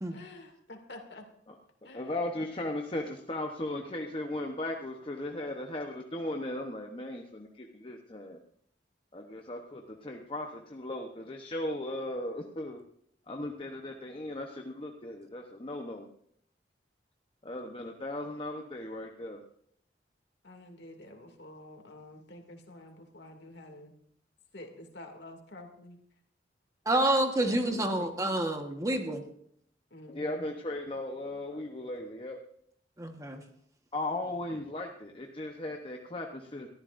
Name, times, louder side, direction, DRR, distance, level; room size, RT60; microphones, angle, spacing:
voice 1, 0.1-0.4 0.9-1.0 1.9-2.0 20.4-23.9 24.5-26.0 27.7-28.1 29.9-30.4, left 1 dB, 65° left, 3 dB, 2.5 m, -48 dB
voice 2, 1.9-8.4 9.1-12.8 13.3-16.1 17.4-19.4 30.1-32.4 33.9-36.7, left 1 dB, 30° left, 2 dB, 0.9 m, -37 dB
voice 3, 26.8-29.2 33.0-33.4, right 1 dB, 20° right, 4 dB, 1.3 m, -28 dB
23.0 x 13.5 x 2.6 m, 0.68 s
head